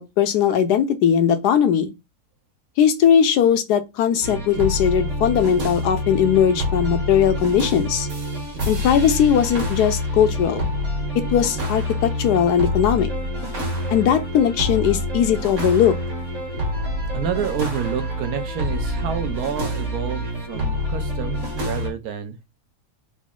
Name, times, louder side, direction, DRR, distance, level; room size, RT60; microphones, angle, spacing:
voice 1, 0.0-1.9 2.8-8.1 8.7-10.7 11.1-13.1 13.9-15.9, left 8 dB, 85° left, 1.2 m, -19 dB
sound 1, 4.2-21.9, left 1 dB, 50° right, 1.6 m, -26 dB
voice 2, 17.1-22.4, right 8 dB, 75° right, 1.1 m, -29 dB
3.9 x 2.0 x 3.5 m
omnidirectional pair, 1.7 m